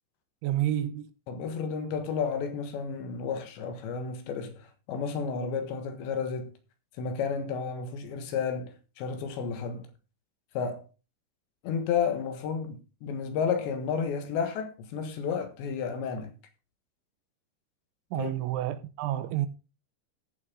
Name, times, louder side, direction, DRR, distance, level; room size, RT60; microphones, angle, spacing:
voice 1, 0.4-1.1 18.1-19.5, right 13 dB, 85° right, 3.3 m, -29 dB
voice 2, 1.3-6.5 7.0-9.9 10.6-10.9 11.6-16.4 18.2-18.4, left 6 dB, 70° left, 3.6 m, -32 dB
15.0 x 7.5 x 3.8 m
omnidirectional pair, 5.5 m